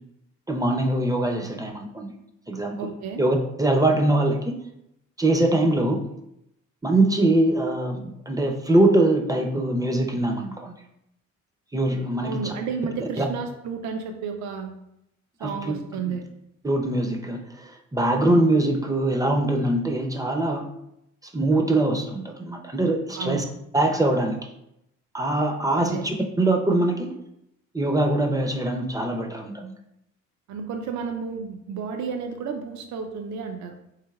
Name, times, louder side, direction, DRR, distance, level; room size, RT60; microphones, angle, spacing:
voice 1, 0.5-2.1 2.5-2.9 3.2-4.6 5.2-6.0 6.8-10.8 11.7-12.5 13.2-13.3 15.4-15.5 16.1-16.2 16.6-20.7 21.3-23.4 23.7-24.4 25.1-27.1 27.7-29.7, right 1 dB, 10° right, 3 dB, 0.5 m, -23 dB
voice 2, 2.8-3.2 12.2-14.7 15.4-16.3 23.2-23.5 25.8-26.0 30.5-33.8, right 5 dB, 70° right, 5 dB, 0.5 m, -32 dB
3.8 x 3.2 x 2.3 m, 0.81 s
cardioid pair, 90°, 30 cm